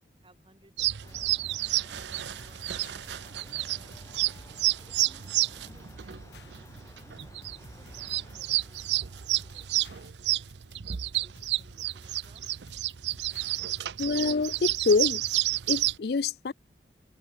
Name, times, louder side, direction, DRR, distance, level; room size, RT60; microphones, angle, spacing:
voice 1, 0.2-3.0 3.4-4.2 4.9-10.5 11.2-12.5, right 1 dB, 30° right, 6.5 m, -62 dB
sound 1, 0.8-16.0, right 15 dB, 80° right, 0.6 m, -30 dB
Mechanical fan, 1.0-10.1, left 1 dB, 15° left, 1.6 m, -54 dB
sound 2, 1.1-15.1, left 2 dB, 80° left, 4.7 m, -55 dB
voice 2, 14.0-15.2 15.7-16.5, left 4 dB, 65° left, 0.5 m, -26 dB
head